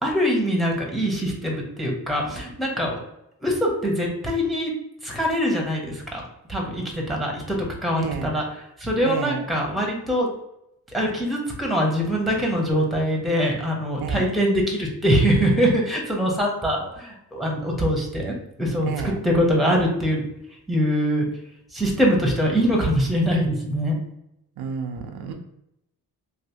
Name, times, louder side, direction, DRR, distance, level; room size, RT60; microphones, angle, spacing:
voice 1, 0.0-2.9 3.4-4.7 5.0-6.2 6.5-8.4 8.8-10.3 10.9-20.2 20.7-21.3 21.7-23.9, equal, ahead, -1 dB, 0.9 m, -23 dB
voice 2, 8.0-8.3 9.0-9.4 14.0-14.3 18.9-19.2 24.6-25.3, right 5 dB, 80° right, 4 dB, 0.6 m, -30 dB
3.2 x 2.6 x 2.7 m, 0.82 s
cardioid pair, 95°, 38 cm